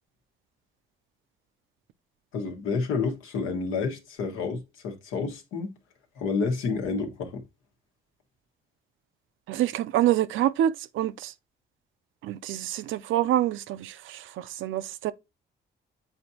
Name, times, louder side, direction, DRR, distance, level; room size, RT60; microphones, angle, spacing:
voice 1, 2.3-5.7 6.2-7.4, left 4 dB, 90° left, 1.3 m, -29 dB
voice 2, 9.5-11.3 12.2-15.1, right 12 dB, 80° right, 0.5 m, -26 dB
7.9 x 4.2 x 2.8 m
cardioid pair, 90°, 20 cm